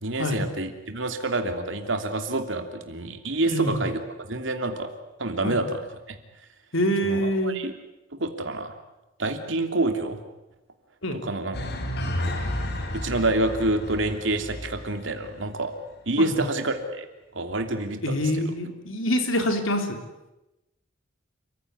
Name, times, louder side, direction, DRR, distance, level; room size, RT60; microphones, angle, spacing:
voice 1, 0.0-4.9 5.2-5.8 6.1-6.2 7.0-7.7 8.2-8.7 9.2-10.2 11.2-11.6 12.9-15.7 16.1-17.1 17.3-18.4, right 2 dB, 65° right, 6 dB, 3.0 m, -27 dB
voice 2, 3.5-3.8 5.4-5.6 6.7-7.6 11.0-11.2 16.2-16.5 18.0-20.0, equal, 80° left, 5 dB, 3.8 m, -25 dB
sound 1, 11.5-15.4 15.7-15.8, left 1 dB, 55° left, 3.6 m, -32 dB
29.0 x 15.5 x 9.7 m, 0.97 s
head